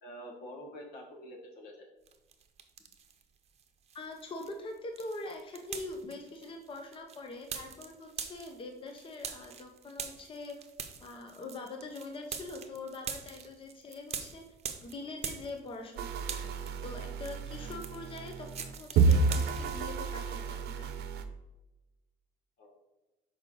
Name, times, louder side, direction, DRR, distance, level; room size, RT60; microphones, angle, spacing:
voice 1, 0.0-1.9 22.6-22.8, equal, 75° left, 1 dB, 1.6 m, -47 dB
sound 1, 2.1-3.2 3.6-20.1, right 7 dB, 40° right, 0.8 m, -44 dB
voice 2, 3.9-10.6 11.0-14.5 14.8-16.4 16.8-20.9, left 2 dB, 30° left, 3 dB, 0.8 m, -43 dB
sound 2, 16.0-21.2, right 4 dB, 75° right, 0.7 m, -30 dB
6.4 x 4.9 x 3.7 m, 1.0 s
cardioid pair, 110°, 17 cm